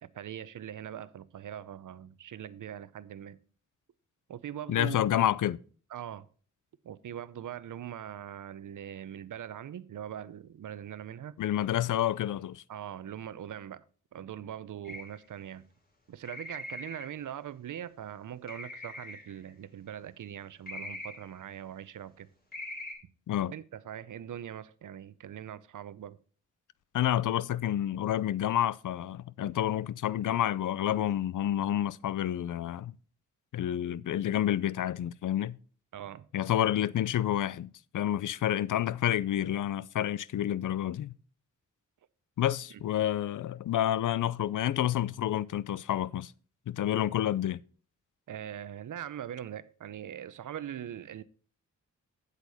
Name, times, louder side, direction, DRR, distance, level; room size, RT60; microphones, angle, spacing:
voice 1, 0.0-3.4 4.3-5.0 5.9-6.3 6.8-11.4 12.7-13.8 14.1-15.6 16.1-22.3 23.5-26.2 35.9-36.3 42.7-42.8 48.3-51.2, right 10 dB, 75° right, 0.7 m, -42 dB
voice 2, 4.7-5.6 11.4-12.6 23.3-23.5 26.9-32.9 33.5-35.6 36.3-41.1 42.4-46.3 46.7-47.6, left 11 dB, 80° left, 0.5 m, -29 dB
sound 1, 14.9-15.2 16.2-17.2 18.5-19.4 20.7-21.4 22.5-22.9, left 1 dB, 30° left, 3.5 m, -42 dB
8.3 x 8.2 x 4.1 m
wide cardioid pair, 100°, 31 cm